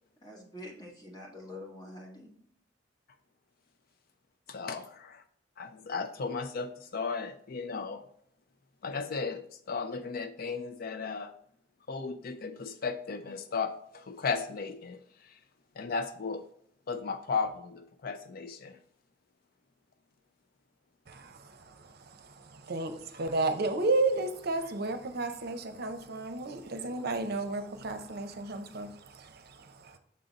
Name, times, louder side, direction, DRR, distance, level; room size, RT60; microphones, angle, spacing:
voice 1, 0.2-2.3, left 1 dB, 20° left, -1 dB, 1.4 m, -46 dB
voice 2, 4.5-5.2 5.6-8.1 8.8-11.3 11.9-15.4 15.8-16.5 16.9-18.8 26.1-26.2, left 5 dB, 50° left, 9 dB, 0.4 m, -35 dB
voice 3, 21.1-21.4 22.5-30.0, right 2 dB, 60° right, 8 dB, 0.7 m, -32 dB
6.6 x 3.9 x 3.9 m, 0.66 s
head